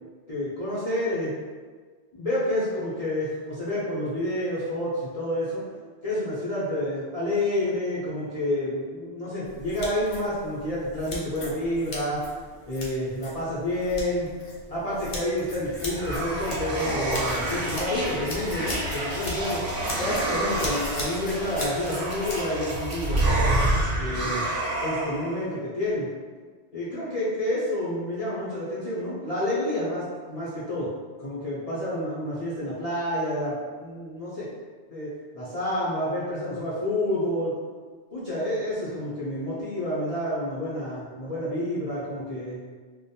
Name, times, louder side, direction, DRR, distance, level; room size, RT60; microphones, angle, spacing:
voice 1, 0.3-1.3 2.1-5.6 6.0-12.2 12.7-14.3 14.7-19.6 20.0-23.3 24.0-24.5 24.8-26.1 26.7-30.9 31.2-34.5 34.9-35.1 35.3-37.5 38.1-42.7, left 1 dB, 40° left, -10 dB, 0.6 m, -29 dB
sound 1, 9.4-22.4, left 1 dB, 70° left, 0.9 m, -38 dB
sound 2, 15.4-25.4, right 1 dB, 55° right, 0.8 m, -28 dB
2.5 x 2.2 x 2.7 m, 1.5 s
omnidirectional pair, 1.1 m